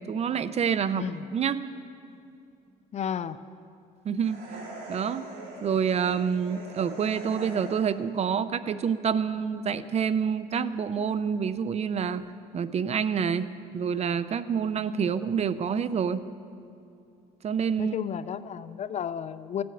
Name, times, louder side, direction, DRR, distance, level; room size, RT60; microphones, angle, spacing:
voice 1, 0.1-1.6 4.0-4.4 4.9-5.3 5.6-12.2 12.5-16.3 17.4-17.9, right 7 dB, 40° right, 14 dB, 0.6 m, -27 dB
voice 2, 0.9-1.3 2.9-3.4 15.0-15.1 17.8-19.6, left 8 dB, 40° left, 15 dB, 0.5 m, -32 dB
sound 1, 4.2-8.1, right 1 dB, 70° right, 4.0 m, -42 dB
15.5 x 7.7 x 9.3 m, 2.6 s
cardioid pair, 110°, 17 cm